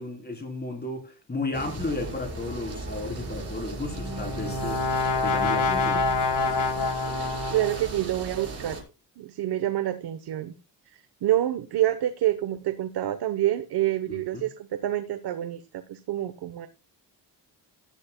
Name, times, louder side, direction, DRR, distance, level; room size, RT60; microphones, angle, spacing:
voice 1, 0.0-4.8 5.2-6.1 6.9-7.0 14.1-14.4, left 2 dB, 25° left, 3.5 m, -33 dB
sound 1, 1.5-8.8, right 2 dB, 35° right, 5.2 m, -37 dB
Brass instrument, 3.7-7.9, left 3 dB, 80° left, 3.1 m, -27 dB
voice 2, 7.5-8.8 9.2-10.5 11.2-16.7, right 13 dB, 65° right, 1.0 m, -27 dB
16.5 x 12.0 x 2.2 m
cardioid pair, 115°, 42 cm